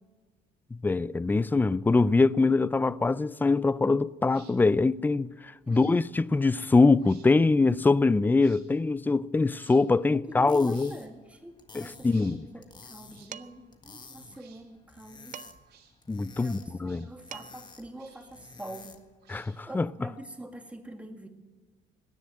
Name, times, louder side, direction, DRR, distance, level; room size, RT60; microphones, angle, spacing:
voice 1, 0.7-10.9 11.7-12.4 16.1-17.1 19.3-19.9, left 3 dB, 10° left, 0.4 m, -23 dB
sound 1, 4.3-4.5 5.6-5.9 6.9-7.3 8.4-8.6 9.5-9.8 10.7-11.0 12.0-12.4 13.1-13.3 14.3-14.6 15.6-15.9 16.8-17.1 17.9-18.4 19.2-19.7, right 8 dB, 80° right, 3.7 m, -58 dB
voice 2, 10.1-15.4 16.4-18.9 19.7-21.3, right 1 dB, 5° right, 2.0 m, -45 dB
sound 2, 10.3-19.2, left 4 dB, 25° left, 1.6 m, -51 dB
Dishes pots and pans, 13.3-13.7 15.3-15.8 17.0-17.1 17.3-17.8, right 9 dB, 50° right, 0.6 m, -44 dB
17.5 x 10.5 x 7.7 m
cardioid pair, 110°, 17 cm